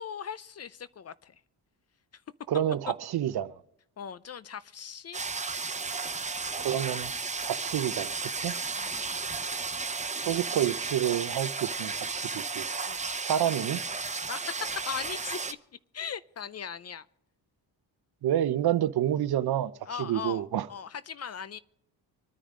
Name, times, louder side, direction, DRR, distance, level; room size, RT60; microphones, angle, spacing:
voice 1, 0.0-1.4 2.1-2.2 4.0-5.2 5.5-5.9 8.8-9.2 12.8-13.1 14.3-15.6 15.9-17.1 19.9-21.6, left 7 dB, 35° left, 0.5 m, -39 dB
voice 2, 2.5-3.5 6.6-7.1 7.4-8.5 10.2-12.6 13.2-13.8 18.2-19.7 20.0-20.7, right 11 dB, 60° right, 0.8 m, -28 dB
sound 1, 5.1-15.5, right 4 dB, 15° right, 0.7 m, -34 dB
25.0 x 9.9 x 3.8 m
cardioid pair, 80°, 42 cm